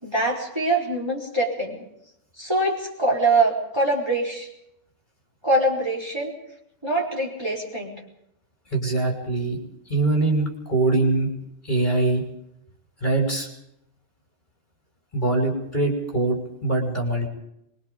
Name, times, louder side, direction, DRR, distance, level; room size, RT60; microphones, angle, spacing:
voice 1, 0.0-1.8 2.4-4.5 5.4-6.3 6.8-7.9, right 2 dB, 20° right, -2 dB, 4.7 m, -23 dB
voice 2, 8.7-9.6 9.9-11.3 11.6-12.2 13.0-13.5 15.1-17.3, right 2 dB, 35° left, 1 dB, 6.0 m, -23 dB
24.5 x 23.0 x 5.3 m, 0.80 s
omnidirectional pair, 1.4 m